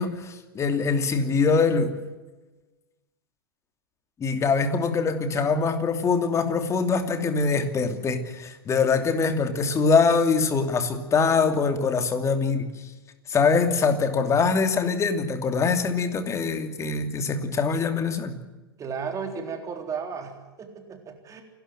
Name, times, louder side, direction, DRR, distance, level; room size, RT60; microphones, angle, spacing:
voice 1, 0.0-2.0 4.2-12.7 13.3-18.4, left 5 dB, 25° left, 7 dB, 2.8 m, -23 dB
voice 2, 18.8-21.4, right 6 dB, 25° right, 4 dB, 3.9 m, -34 dB
29.0 x 12.5 x 7.7 m, 1.1 s
hypercardioid pair, 110°, 12 cm